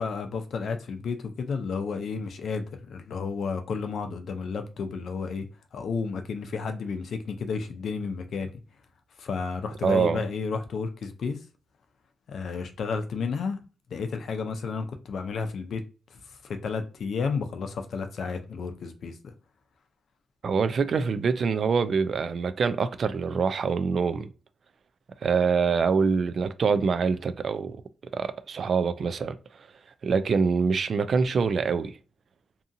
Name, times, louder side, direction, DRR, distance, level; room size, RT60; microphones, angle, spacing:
voice 1, 0.0-5.5 5.7-8.5 9.2-11.4 12.3-13.6 13.9-15.8 16.1-19.3, left 5 dB, 70° left, 0.5 m, -32 dB
voice 2, 9.8-10.2 20.4-24.3 25.2-27.8 28.1-29.3 30.0-31.9, right 5 dB, 55° right, 0.3 m, -25 dB
2.7 x 2.4 x 2.6 m
cardioid pair, 95°, 0 cm